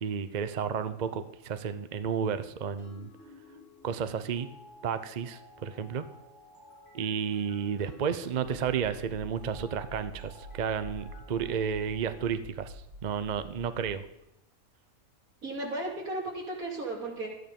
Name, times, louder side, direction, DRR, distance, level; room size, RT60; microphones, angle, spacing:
voice 1, 0.0-3.1 3.8-4.5 4.8-6.1 6.9-12.8 13.0-14.0, right 7 dB, 45° right, 11 dB, 0.6 m, -32 dB
sound 1, 2.8-12.2, left 2 dB, 15° left, 4.5 m, -54 dB
sound 2, 8.4-13.9, right 1 dB, 25° right, 4.6 m, -46 dB
voice 2, 15.4-17.3, right 2 dB, 85° right, -2 dB, 3.2 m, -35 dB
13.5 x 9.6 x 5.3 m, 0.88 s
omnidirectional pair, 1.5 m